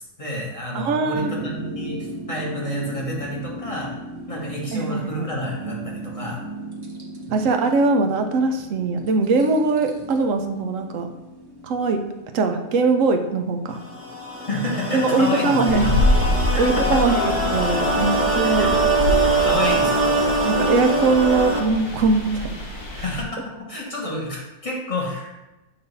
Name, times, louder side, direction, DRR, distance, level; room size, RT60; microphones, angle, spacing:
voice 1, 0.2-3.9 4.3-6.4 14.5-15.9 16.5-16.6 16.9-17.0 18.4-18.7 19.2-20.2 23.0-23.4 23.7-25.5, left 1 dB, 25° left, -3 dB, 1.2 m, -29 dB
voice 2, 0.7-1.3 4.7-5.3 7.3-11.1 11.6-12.0 12.3-13.8 14.9-15.9 16.6-18.7 20.4-22.6 22.9-23.0, right 3 dB, 65° right, 6 dB, 0.9 m, -21 dB
sound 1, 1.1-14.3, right 1 dB, 40° right, 0.3 m, -37 dB
sound 2, 13.8-21.6, right 2 dB, 10° right, 0.7 m, -22 dB
sound 3, 15.7-23.2, left 1 dB, 90° left, 1.6 m, -26 dB
7.0 x 2.6 x 5.3 m, 1.0 s
omnidirectional pair, 1.6 m